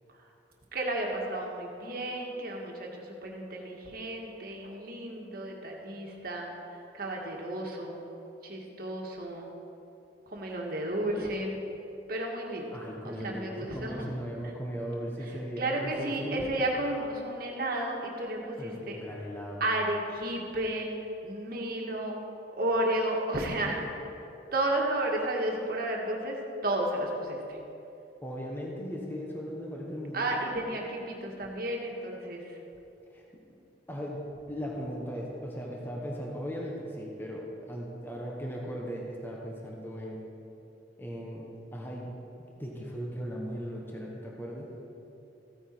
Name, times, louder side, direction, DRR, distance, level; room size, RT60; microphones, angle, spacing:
voice 1, 0.7-8.0 8.4-9.5 10.3-11.6 12.1-14.1 14.4-14.5 15.2-19.0 19.6-22.2 22.6-23.9 24.5-26.4 26.6-27.6 30.1-32.6, right 1 dB, 55° right, 0 dB, 1.7 m, -33 dB
voice 2, 12.7-16.5 18.6-19.6 28.2-30.4 33.1-33.4 33.9-40.2 41.0-42.1 42.6-44.7, equal, 10° left, -2 dB, 1.2 m, -38 dB
15.0 x 9.1 x 4.6 m, 2.9 s
head